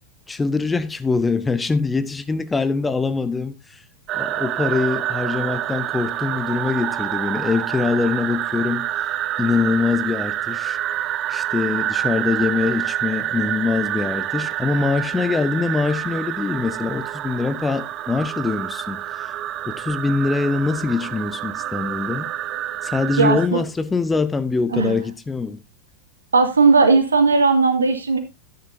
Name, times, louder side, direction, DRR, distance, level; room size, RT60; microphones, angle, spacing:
voice 1, 0.3-3.8 4.1-8.9 9.4-10.8 11.3-19.3 19.7-22.3 22.8-25.6, left 4 dB, 10° left, 0.9 m, -23 dB
sound 1, 4.1-23.5, right 12 dB, 35° right, 0.7 m, -27 dB
voice 2, 23.2-23.6 24.7-25.0 26.3-28.2, right 4 dB, 75° right, 2.3 m, -16 dB
12.0 x 10.5 x 2.7 m
figure-of-eight pair, 90°, 0 cm